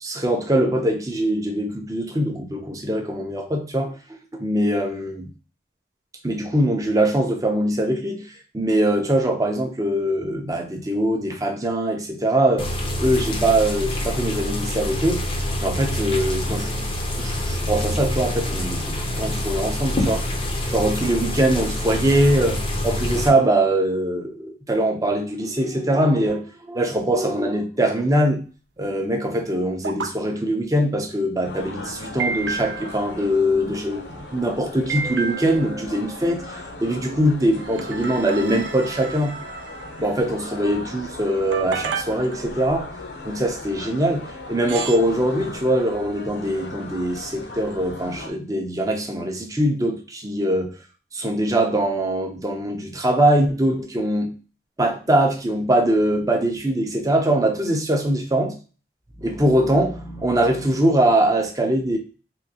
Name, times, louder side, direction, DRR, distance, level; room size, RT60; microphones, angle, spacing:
voice 1, 0.0-3.9 4.4-5.3 6.2-12.7 13.0-15.2 15.6-16.9 17.2-20.3 20.7-28.4 28.8-39.4 40.0-42.9 43.2-50.8 51.1-54.3 54.8-58.5 59.2-62.0, right 1 dB, 20° right, 0.5 m, -22 dB
sound 1, 12.6-23.3, left 1 dB, 30° left, 0.5 m, -26 dB
sound 2, 29.8-30.1 32.2-33.0 34.9-35.7 37.6-40.2 41.5-42.8 44.1-44.2 44.7-45.0, right 5 dB, 90° right, 0.5 m, -31 dB
sound 3, 31.4-48.3, left 2 dB, 80° left, 0.7 m, -38 dB
3.7 x 2.6 x 2.7 m
head